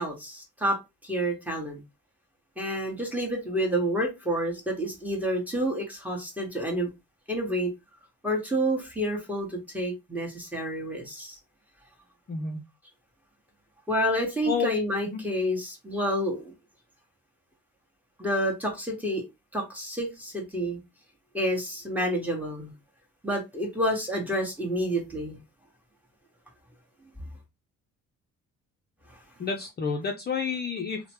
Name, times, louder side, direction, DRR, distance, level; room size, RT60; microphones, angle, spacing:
voice 1, 0.0-1.8 2.6-6.9 7.3-7.7 8.2-11.4 13.9-16.5 18.2-19.2 19.5-20.8 21.3-22.7 23.2-25.4, equal, 5° right, 1.3 m, -29 dB
voice 2, 12.3-12.6 14.5-14.8 15.0-15.2 29.4-31.0, left 5 dB, 35° left, 0.5 m, -30 dB
3.1 x 2.1 x 2.9 m
cardioid pair, 90°, 30 cm